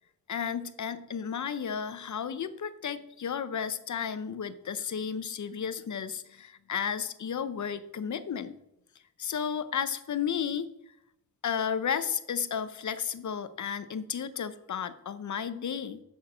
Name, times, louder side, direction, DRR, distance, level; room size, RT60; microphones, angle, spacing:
voice 1, 0.3-8.5 9.2-10.7 11.4-16.0, left 7 dB, 55° left, 13 dB, 0.7 m, -33 dB
6.7 x 6.4 x 7.3 m, 0.81 s
cardioid pair, 75°, 35 cm